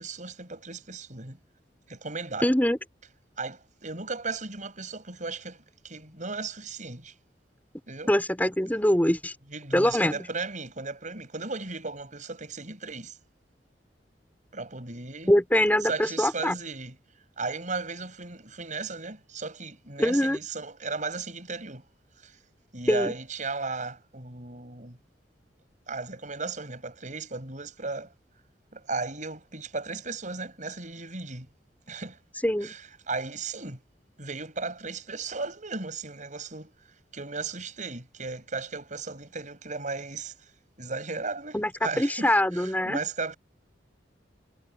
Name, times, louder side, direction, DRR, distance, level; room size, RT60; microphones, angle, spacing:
voice 1, 0.0-1.4 1.9-2.5 3.4-7.1 7.9-8.1 9.5-13.2 14.5-15.3 15.8-17.0 17.4-21.9 22.2-22.4 22.7-25.0 25.9-28.1 28.7-31.5 31.9-32.2 32.6-33.8 34.2-36.7 37.1-40.3 40.8-43.4, right 4 dB, 45° right, 7.4 m, -36 dB
voice 2, 2.4-2.8 8.1-9.3 9.7-10.2 15.3-16.5 20.0-20.4 22.9-23.2 32.4-32.8 41.5-43.0, left 1 dB, 10° left, 5.0 m, -23 dB
head